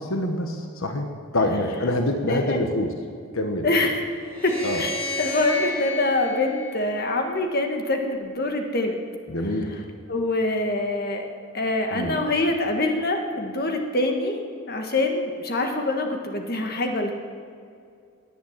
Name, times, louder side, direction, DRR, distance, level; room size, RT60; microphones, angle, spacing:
voice 1, 0.0-2.9 3.3-3.7 4.6-4.8 9.3-9.7 11.9-12.2, left 1 dB, 75° left, 5 dB, 1.3 m, -26 dB
voice 2, 2.3-2.6 3.6-4.0 4.4-4.9 5.2-9.0 10.1-11.2 11.5-14.4 14.7-17.1, left 2 dB, 45° left, 4 dB, 1.6 m, -25 dB
sound 1, 4.2-7.5, left 2 dB, 10° left, 5.2 m, -32 dB
18.5 x 9.5 x 7.4 m, 2.3 s
head